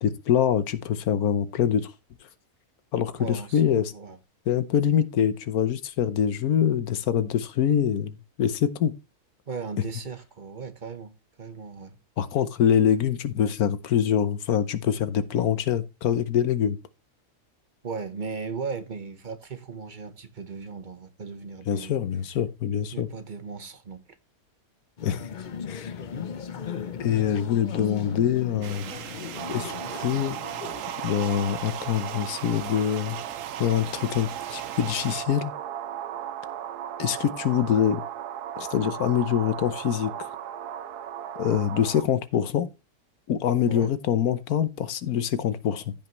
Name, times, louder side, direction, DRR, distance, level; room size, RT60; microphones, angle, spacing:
voice 1, 0.0-1.9 2.9-3.9 4.5-8.9 12.2-16.8 21.7-23.1 25.0-25.2 25.7-25.9 27.0-28.9 29.5-30.4 31.0-33.2 33.6-35.5 37.0-38.0 38.6-40.1 41.4-42.7 43.3-45.9, left 9 dB, 70° left, 1.3 m, -24 dB
voice 2, 3.2-4.2 9.5-12.0 17.8-22.0 22.9-24.2 43.7-43.9, right 5 dB, 35° right, 1.0 m, -37 dB
sound 1, 25.0-31.3, left 7 dB, 50° left, 0.5 m, -37 dB
sound 2, 28.6-35.3, right 10 dB, 65° right, 1.0 m, -40 dB
sound 3, 29.4-42.0, right 10 dB, 85° right, 1.4 m, -36 dB
15.0 x 5.6 x 3.1 m
omnidirectional pair, 1.6 m